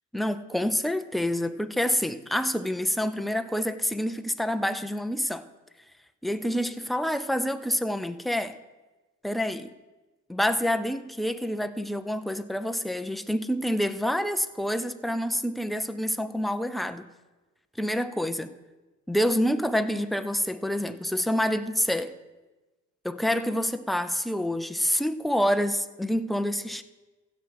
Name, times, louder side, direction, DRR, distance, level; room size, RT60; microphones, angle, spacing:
voice 1, 0.1-5.4 6.2-8.5 9.2-9.7 10.3-17.0 17.8-18.5 19.1-22.1 23.0-26.8, equal, ahead, 10 dB, 0.5 m, -27 dB
16.0 x 6.3 x 4.8 m, 1.1 s
cardioid pair, 90°, 30 cm